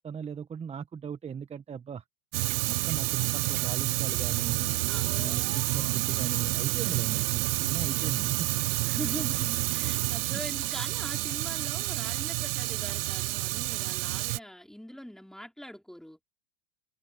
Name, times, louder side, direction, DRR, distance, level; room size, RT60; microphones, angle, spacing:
voice 1, 0.0-2.0 2.7-4.8 5.2-8.5, right 7 dB, 15° right, 1.7 m, -38 dB
Fire, 2.3-14.4, right 23 dB, 50° right, 0.8 m, -29 dB
sound 1, 4.3-10.0, left 23 dB, 55° left, 3.4 m, -52 dB
voice 2, 4.9-5.4 6.8-7.1 8.8-16.2, equal, ahead, 5.0 m, -43 dB
hypercardioid pair, 115°, 38 cm